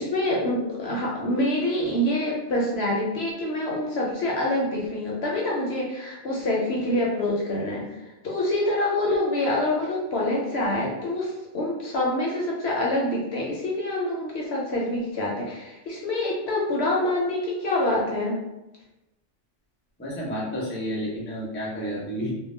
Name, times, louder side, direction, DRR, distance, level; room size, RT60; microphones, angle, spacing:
voice 1, 0.0-18.4, left 1 dB, 65° left, -3 dB, 0.7 m, -26 dB
voice 2, 20.0-22.3, equal, 15° left, -5 dB, 0.4 m, -30 dB
2.3 x 2.0 x 3.1 m, 0.97 s
omnidirectional pair, 1.4 m